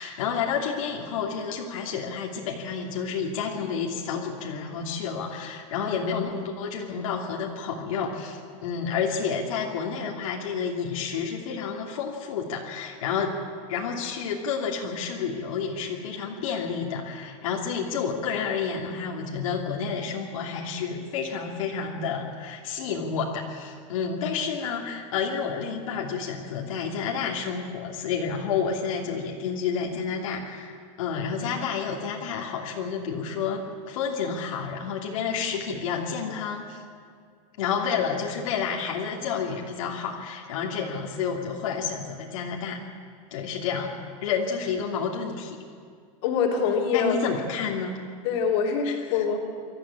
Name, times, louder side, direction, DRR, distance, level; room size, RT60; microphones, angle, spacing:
voice 1, 0.0-13.4 13.7-36.8 37.6-42.8 43.3-45.6 46.9-48.0 48.8-49.2, left 6 dB, 70° left, -2 dB, 2.9 m, -30 dB
voice 2, 46.2-47.2 48.2-49.4, left 6 dB, 45° left, -1 dB, 3.5 m, -24 dB
24.5 x 14.0 x 8.8 m, 2.1 s
supercardioid pair, 175°, 18 cm